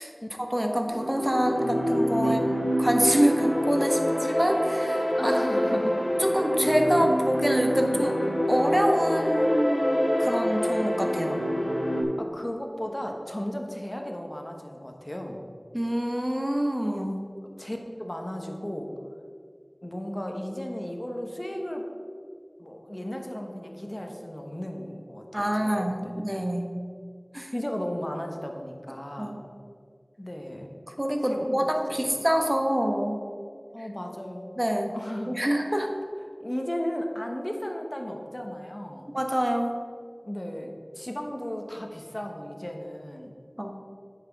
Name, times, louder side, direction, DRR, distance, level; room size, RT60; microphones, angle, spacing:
voice 1, 0.4-2.4 2.8-5.4 6.2-8.1 8.5-11.4 15.7-17.2 25.3-26.7 27.3-27.5 29.2-29.4 31.0-33.2 34.6-35.0 35.3-35.9 39.1-39.7 43.6-43.7, equal, 20° right, 3 dB, 1.1 m, -26 dB
sound 1, 0.9-12.0, equal, 50° left, 1.5 m, -26 dB
voice 2, 5.2-6.0 7.9-8.1 12.2-15.4 17.4-18.9 19.8-21.8 22.6-25.5 25.8-26.2 27.5-29.4 30.2-30.7 31.3-31.6 31.9-32.3 33.7-34.6 34.9-35.4 36.4-39.1 40.2-43.3, equal, 30° left, 2 dB, 1.2 m, -35 dB
9.2 x 6.0 x 4.7 m, 2.1 s
wide cardioid pair, 40°, 0 cm